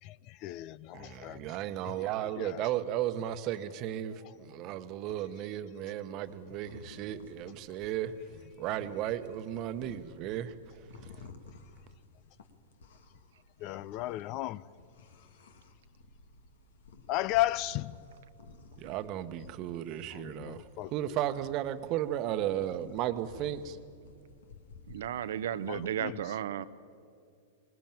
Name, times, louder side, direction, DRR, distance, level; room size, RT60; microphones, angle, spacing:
voice 1, 0.0-1.6 1.8-2.0 2.4-2.7 4.2-4.3 13.6-14.6 17.1-18.1 20.1-21.3 22.8-22.9 25.7-26.2, left 16 dB, 45° left, 0.5 m, -35 dB
voice 2, 0.9-8.1 8.6-10.5 11.0-11.1 18.8-23.8, right 12 dB, 45° right, 1.1 m, -35 dB
sound 1, 6.2-25.9, left 4 dB, 70° left, 1.8 m, -55 dB
voice 3, 24.9-26.6, right 10 dB, 70° right, 0.7 m, -34 dB
20.5 x 19.5 x 9.0 m
hypercardioid pair, 100°, 0 cm